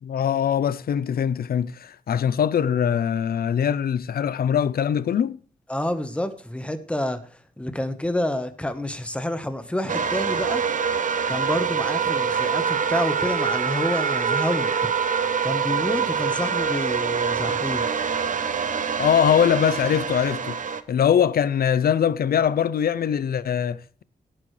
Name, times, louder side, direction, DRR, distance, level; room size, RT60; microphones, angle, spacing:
voice 1, 0.0-5.4 19.0-20.6 20.9-24.0, left 8 dB, 85° left, 0.6 m, -22 dB
voice 2, 5.7-7.3 7.6-10.6 11.3-14.9 15.4-17.8, left 1 dB, 10° left, 1.2 m, -28 dB
sound 1, 9.9-20.8, right 6 dB, 60° right, 0.8 m, -25 dB
18.0 x 9.2 x 3.3 m
wide cardioid pair, 110°, 15 cm